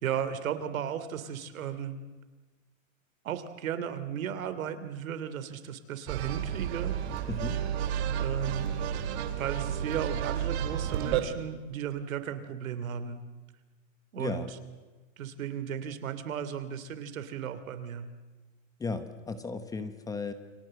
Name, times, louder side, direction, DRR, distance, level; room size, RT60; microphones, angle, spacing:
voice 1, 0.0-2.0 3.2-7.0 8.2-8.8 9.4-13.2 14.1-14.5 15.2-18.1, right 8 dB, 80° right, 11 dB, 3.0 m, -35 dB
sound 1, 6.1-11.2, right 9 dB, 55° right, 2.9 m, -31 dB
voice 2, 7.3-7.6 14.2-14.5 18.8-20.3, left 4 dB, 10° left, 11 dB, 1.0 m, -35 dB
30.0 x 23.5 x 7.7 m, 1.3 s
supercardioid pair, 160°, 40 cm